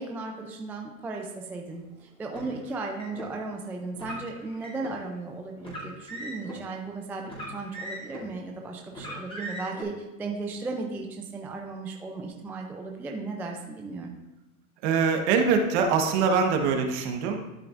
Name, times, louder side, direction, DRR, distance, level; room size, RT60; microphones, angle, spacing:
voice 1, 0.0-14.1, right 3 dB, 5° right, 1 dB, 0.3 m, -36 dB
Car, 2.3-3.3 3.9-5.0 5.6-6.6 7.2-8.3 8.9-9.8, equal, 10° left, 2.5 m, -39 dB
voice 2, 14.8-17.4, right 5 dB, 55° right, 4 dB, 1.3 m, -23 dB
12.0 x 5.8 x 2.5 m, 1.0 s
hypercardioid pair, 120°, 42 cm